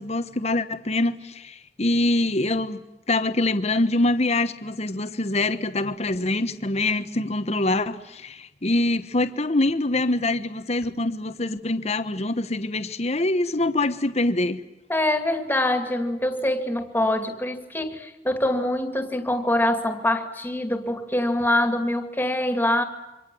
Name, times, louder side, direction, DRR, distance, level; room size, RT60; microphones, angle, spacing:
voice 1, 0.0-2.8 3.1-14.6, left 2 dB, 40° left, 1.2 m, -24 dB
voice 2, 14.9-22.8, left 1 dB, 10° left, 2.5 m, -24 dB
28.0 x 25.0 x 7.8 m
head